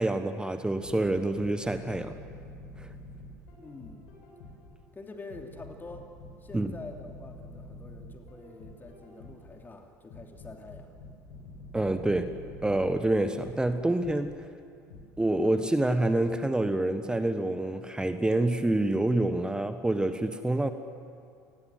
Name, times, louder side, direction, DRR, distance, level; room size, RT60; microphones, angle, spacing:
voice 1, 0.0-2.1 2.8-2.9 6.5-6.7 11.7-12.4 12.6-14.5 15.2-20.7, right 1 dB, 10° right, 10 dB, 1.3 m, -27 dB
sound 1, 0.8-4.8 5.3-9.6 10.1-14.4 14.9-15.1, left 2 dB, 60° left, 7.0 m, -47 dB
voice 2, 3.6-4.1 4.9-6.1 6.4-10.9, left 3 dB, 20° left, 3 dB, 2.9 m, -46 dB
29.5 x 20.0 x 7.8 m, 2.4 s
figure-of-eight pair, 65°, 10 cm